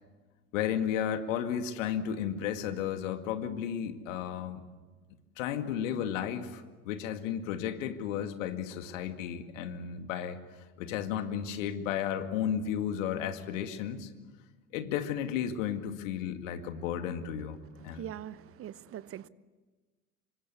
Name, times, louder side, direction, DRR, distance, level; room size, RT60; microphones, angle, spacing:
voice 1, 0.5-4.6 5.4-10.4 10.8-14.1 14.7-18.1, left 9 dB, 60° left, 2.3 m, -33 dB
voice 2, 17.9-19.3, right 11 dB, 30° right, 0.9 m, -42 dB
26.5 x 24.5 x 8.3 m
figure-of-eight pair, 70°, 43 cm